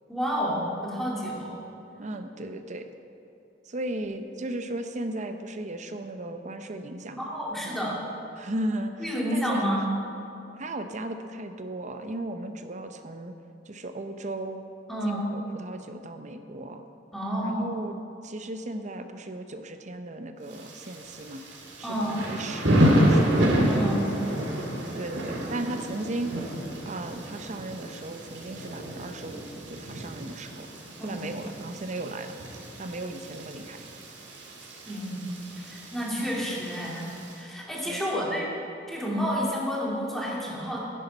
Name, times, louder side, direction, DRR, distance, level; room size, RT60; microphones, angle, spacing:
voice 1, 0.1-1.6 7.2-8.0 9.0-9.9 14.9-15.3 17.1-17.6 21.8-22.2 23.7-24.1 31.0-31.2 31.5-31.6 34.9-35.2 35.6-37.1 37.4-38.5 38.9-40.8, equal, ahead, -5 dB, 2.3 m, -30 dB
voice 2, 2.0-2.9 3.7-7.3 8.4-9.8 10.6-13.4 13.7-14.7 15.0-16.8 17.4-21.4 21.8-23.3 25.0-26.3 26.9-30.7 31.0-32.3 32.8-33.8 37.9-38.3, right 1 dB, 40° right, 7 dB, 0.7 m, -36 dB
Thunder / Rain, 20.5-37.4, equal, 90° right, 2.0 m, -29 dB
10.0 x 10.0 x 5.4 m, 2.8 s
head